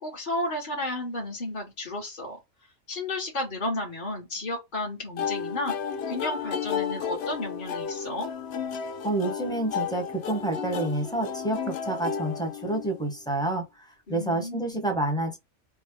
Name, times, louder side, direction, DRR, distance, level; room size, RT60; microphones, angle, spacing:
voice 1, 0.0-2.4 2.9-5.7 6.1-8.3 14.1-14.8, left 1 dB, 40° left, 1.1 m, -33 dB
sound 1, 5.2-13.1, left 7 dB, 65° left, 0.7 m, -33 dB
voice 2, 9.0-15.4, right 2 dB, 5° left, 0.7 m, -29 dB
4.5 x 2.2 x 3.5 m
omnidirectional pair, 1.4 m